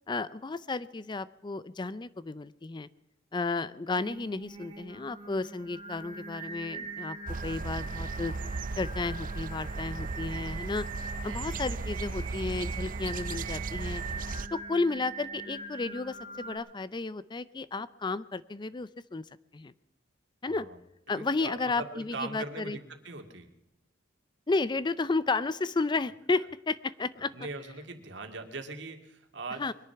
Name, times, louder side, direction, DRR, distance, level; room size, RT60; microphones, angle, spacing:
voice 1, 0.1-2.9 3.3-7.2 7.4-8.3 8.8-10.9 11.2-14.0 14.5-19.2 19.5-19.7 20.4-20.7 21.1-22.8 24.5-27.3 29.6-29.7, left 3 dB, 25° left, 17 dB, 0.4 m, -32 dB
Singing, 4.0-16.6, right 3 dB, 25° right, 3.1 m, -42 dB
sound 1, 7.3-14.5, right 3 dB, 45° right, 0.6 m, -36 dB
voice 2, 10.0-10.5 11.2-11.6 20.4-20.8 21.1-23.5 27.2-29.6, right 3 dB, 70° right, 5 dB, 2.3 m, -41 dB
22.5 x 10.5 x 5.7 m, 0.92 s
head